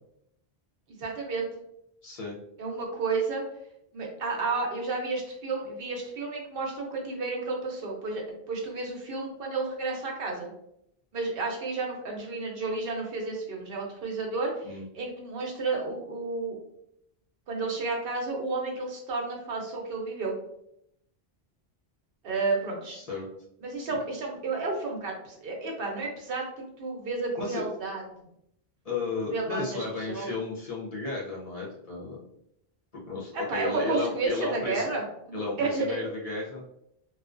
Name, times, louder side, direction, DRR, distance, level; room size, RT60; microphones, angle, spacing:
voice 1, 1.0-1.5 2.6-3.4 3.9-8.2 8.5-10.5 11.1-14.5 14.9-16.6 17.5-20.3 22.2-23.0 23.6-28.2 29.3-30.4 33.3-35.0 35.6-36.0, right 3 dB, 65° right, 0 dB, 0.9 m, -31 dB
voice 2, 2.0-2.4 14.6-14.8 22.9-23.3 27.4-27.6 28.8-32.2 32.9-34.9 35.3-36.6, left 3 dB, 45° left, -4 dB, 0.6 m, -34 dB
2.4 x 2.2 x 2.4 m, 0.75 s
omnidirectional pair, 1.1 m